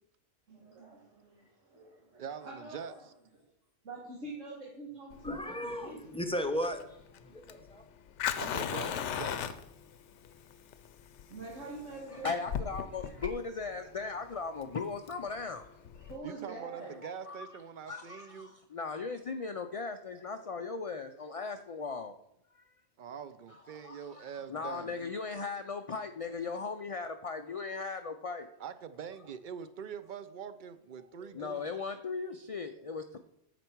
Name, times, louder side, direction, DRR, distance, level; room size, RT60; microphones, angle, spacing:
voice 1, 0.5-3.0 3.8-6.2 11.3-12.3 16.1-17.0 23.6-23.8, right 2 dB, 90° right, -5 dB, 2.2 m, -46 dB
voice 2, 2.2-2.9 8.4-9.6 16.2-18.5 23.0-25.0 28.6-31.7, right 7 dB, 55° right, 12 dB, 0.5 m, -44 dB
Fire, 5.1-16.2, left 9 dB, 80° left, 0.9 m, -39 dB
voice 3, 5.2-6.8 7.3-7.8, equal, 5° left, 6 dB, 0.5 m, -35 dB
voice 4, 12.1-15.6 16.0-16.1 17.0-17.5 17.9-22.1 22.5-22.7 23.8-28.5 31.2-33.2, left 4 dB, 65° left, 7 dB, 0.3 m, -38 dB
9.1 x 6.7 x 4.5 m, 0.78 s
omnidirectional pair, 1.2 m